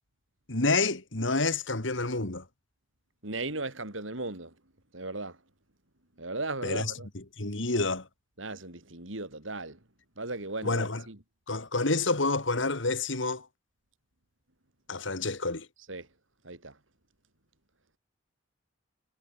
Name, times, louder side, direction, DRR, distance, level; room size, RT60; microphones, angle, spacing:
voice 1, 0.5-2.4 6.6-8.1 10.6-11.0 11.5-13.5 14.9-15.7, left 3 dB, 70° left, 2.5 m, -29 dB
voice 2, 3.2-4.5 4.9-5.4 6.2-7.1 8.4-9.8 10.2-11.2 15.9-16.1 16.4-16.8, right 2 dB, 75° right, 5.2 m, -37 dB
head